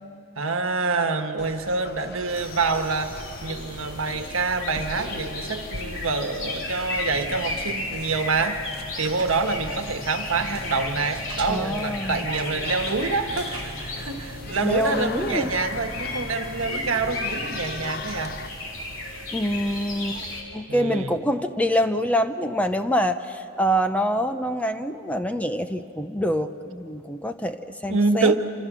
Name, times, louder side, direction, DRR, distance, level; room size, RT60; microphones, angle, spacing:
voice 1, 0.4-8.6 9.0-18.4 20.1-20.3 20.7-21.1 27.9-28.4, right 3 dB, 70° right, 7 dB, 1.4 m, -26 dB
sound 1, 1.4-18.5, left 4 dB, 50° left, 0.8 m, -40 dB
sound 2, 2.3-20.4, left 2 dB, 65° left, 3.5 m, -35 dB
Engine, 6.9-18.5, right 1 dB, 20° right, 1.6 m, -41 dB
voice 2, 11.5-12.2 14.6-15.5 19.3-20.2 20.5-28.3, equal, 5° left, 8 dB, 0.7 m, -25 dB
27.5 x 26.0 x 6.2 m, 2.9 s
head